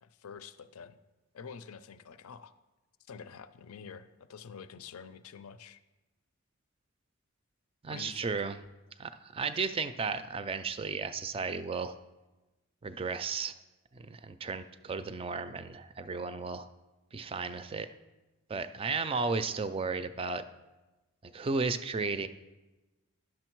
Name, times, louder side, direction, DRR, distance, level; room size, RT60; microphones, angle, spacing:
voice 1, 0.0-1.0 1.3-2.5 3.1-5.8 7.9-8.3, left 6 dB, 85° left, 13 dB, 0.5 m, -47 dB
voice 2, 7.8-8.6 9.0-12.0 12.8-13.5 13.9-16.7 17.1-17.9 18.5-20.4 21.2-22.3, right 4 dB, 25° right, 11 dB, 0.3 m, -34 dB
10.5 x 6.3 x 4.5 m, 1.1 s
head